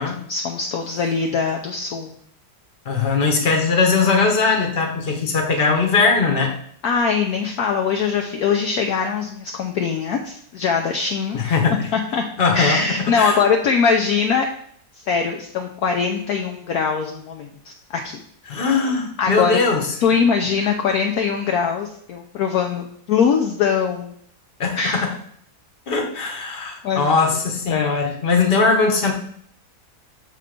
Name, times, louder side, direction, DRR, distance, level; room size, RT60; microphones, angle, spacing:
voice 1, 0.0-2.1 6.8-11.5 11.9-12.2 12.5-14.5 15.1-18.2 18.6-18.7 19.2-19.5 20.0-24.1 24.7-25.0 26.8-27.1 27.7-28.0, left 6 dB, 65° left, 2 dB, 1.0 m, -22 dB
voice 2, 2.8-6.5 11.3-11.9 12.4-13.4 18.5-19.9 20.6-20.7 24.6-25.1 25.9-29.1, left 4 dB, 35° left, 1 dB, 1.2 m, -20 dB
6.7 x 3.7 x 5.0 m, 0.63 s
omnidirectional pair, 1.9 m